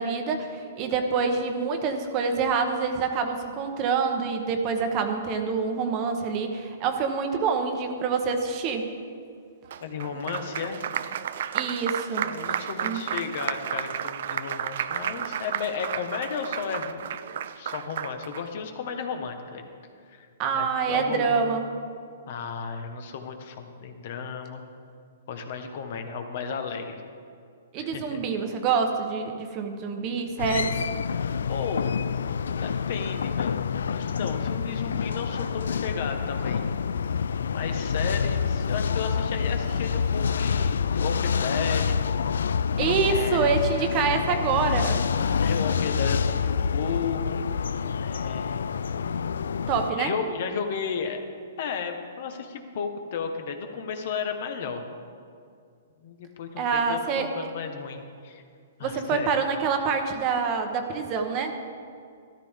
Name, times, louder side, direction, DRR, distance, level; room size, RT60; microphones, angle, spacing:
voice 1, 0.0-8.9 11.5-13.0 20.4-21.7 27.7-30.8 42.8-45.0 49.7-50.1 56.6-57.3 58.8-61.6, right 5 dB, 30° right, 5 dB, 1.1 m, -26 dB
Applause, 9.7-18.4, right 9 dB, 60° right, 0.4 m, -32 dB
voice 2, 9.8-10.8 12.2-17.0 17.5-19.7 20.1-20.3 20.5-21.6 22.3-24.6 25.3-27.0 27.8-28.2 31.5-31.9 32.2-36.6 37.5-42.0 43.0-43.8 45.4-47.5 48.0-48.6 49.9-51.3 51.6-54.8 56.0-58.4 58.8-59.3, left 6 dB, 55° left, 6 dB, 1.2 m, -34 dB
sound 1, 30.4-49.9, left 6 dB, 85° left, 0.3 m, -27 dB
13.0 x 13.0 x 3.7 m, 2.2 s
hypercardioid pair, 155°, 0 cm